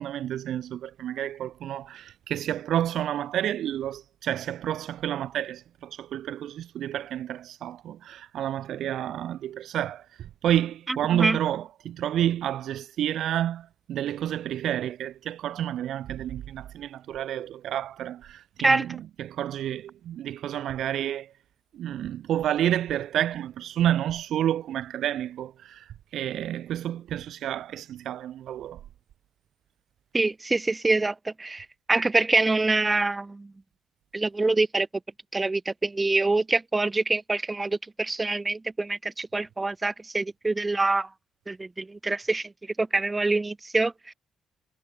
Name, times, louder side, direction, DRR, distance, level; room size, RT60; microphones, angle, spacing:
voice 1, 0.0-21.3 21.7-28.8, right 11 dB, 70° right, 1.4 m, -30 dB
voice 2, 10.9-11.4 18.6-18.9 30.1-33.5 34.1-34.9 35.3-41.1 41.5-42.5 42.8-44.1, right 3 dB, 25° right, 7.0 m, -25 dB
supercardioid pair, 60°, 0 cm